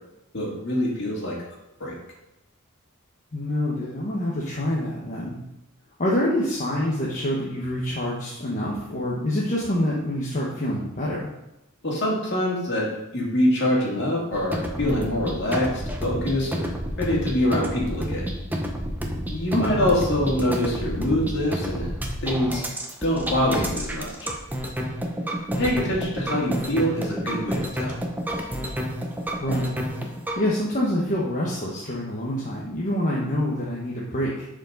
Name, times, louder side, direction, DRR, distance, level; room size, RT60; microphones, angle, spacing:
voice 1, 0.3-1.4 1.8-1.9 11.8-16.7 17.0-18.3 19.3-21.9 22.2-22.6 23.0-24.3 25.6-27.9, left 1 dB, 50° left, -3 dB, 2.6 m, -25 dB
voice 2, 3.3-5.4 6.0-11.3 19.5-19.8 29.4-29.7 30.4-34.5, left 1 dB, 35° left, -5 dB, 1.2 m, -26 dB
sound 1, 14.3-30.4, equal, 10° right, 0.9 m, -29 dB
11.0 x 5.1 x 4.0 m, 0.92 s
head